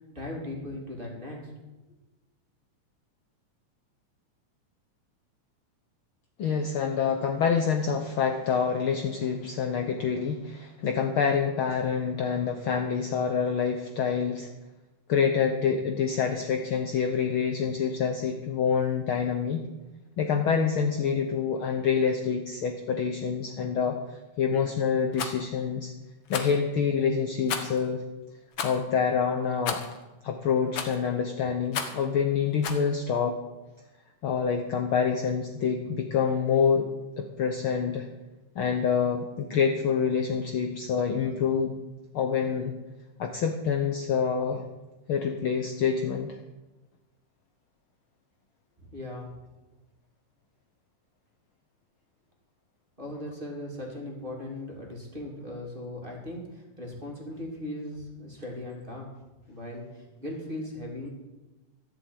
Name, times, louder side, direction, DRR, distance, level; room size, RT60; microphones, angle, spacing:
voice 1, 0.0-1.5 48.8-49.3 53.0-59.1 59.5-61.1, left 1 dB, 15° right, -1 dB, 2.7 m, -38 dB
voice 2, 6.4-14.5 15.1-19.7 20.2-25.9 26.3-28.0 28.6-29.8 30.2-33.4 34.2-36.9 37.2-38.1 38.5-41.7 42.1-42.7 43.2-44.6 45.1-46.4, left 6 dB, 75° left, 5 dB, 1.2 m, -27 dB
Rattle, 25.1-25.4 26.3-26.6 27.5-27.8 28.5-28.8 29.7-30.0 30.7-31.1 31.7-32.0 32.6-32.8, left 6 dB, 55° left, 1.4 m, -33 dB
14.0 x 7.4 x 9.3 m, 1.1 s
omnidirectional pair, 3.6 m